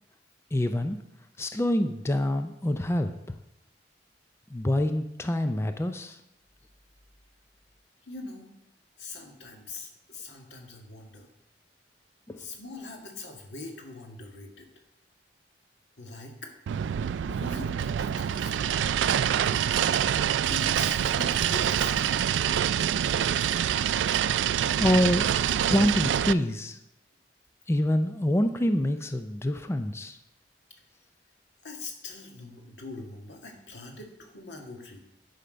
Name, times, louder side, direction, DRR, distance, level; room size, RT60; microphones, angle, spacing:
voice 1, 0.5-1.0 1.4-3.1 4.5-6.2 12.3-12.4 23.1-23.2 24.8-25.3 25.7-26.8 27.7-30.2, left 1 dB, 15° left, 8 dB, 0.4 m, -26 dB
voice 2, 8.0-8.5 9.0-11.3 12.4-14.7 16.0-16.5 17.3-18.8 19.7-20.0 20.5-22.2 23.4-23.5 31.6-35.0, left 3 dB, 85° left, 2 dB, 1.8 m, -42 dB
sound 1, 16.7-26.3, right 9 dB, 85° right, 0.3 m, -26 dB
10.0 x 5.7 x 5.1 m, 0.82 s
head